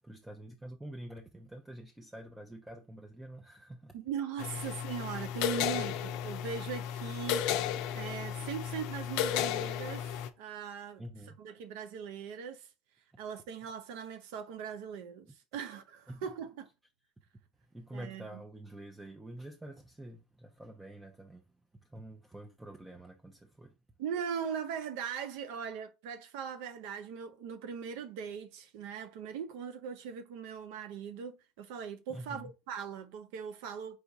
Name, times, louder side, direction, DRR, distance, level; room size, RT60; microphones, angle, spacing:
voice 1, 0.0-4.0 5.8-6.0 11.0-11.4 16.1-16.2 17.7-23.8 32.1-32.5, right 1 dB, 10° right, 0.6 m, -47 dB
voice 2, 3.9-7.4 7.9-11.0 11.4-12.7 13.2-16.7 17.9-18.3 24.0-34.0, right 7 dB, 75° right, 0.5 m, -40 dB
sound 1, 4.4-10.3, left 10 dB, 70° left, 0.4 m, -34 dB
4.8 x 2.3 x 4.0 m
hypercardioid pair, 85°, 0 cm